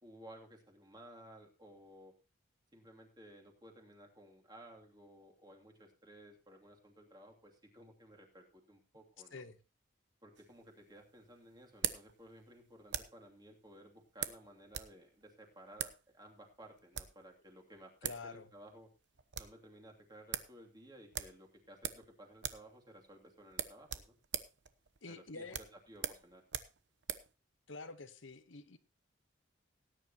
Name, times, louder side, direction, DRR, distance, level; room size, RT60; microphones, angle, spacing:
voice 1, 0.0-2.1 2.7-9.4 10.2-18.9 19.4-24.2 25.1-26.4, right 1 dB, 20° right, 1 dB, 2.8 m, -57 dB
sound 1, 10.4-13.3 14.2-15.0 15.2-15.3 15.7-16.0 16.7-17.2 17.8-17.9 18.0-18.3 18.6-18.7 19.0-19.6 19.9-20.0 20.3-20.5 21.1-22.1 22.4-22.7 23.0-23.1 23.5-27.3, right 10 dB, 70° right, 0.9 m, -41 dB
voice 2, 18.0-18.5 25.0-25.6 27.7-28.8, left 3 dB, 85° left, 11 dB, 1.2 m, -47 dB
18.0 x 10.0 x 3.0 m, 0.30 s
head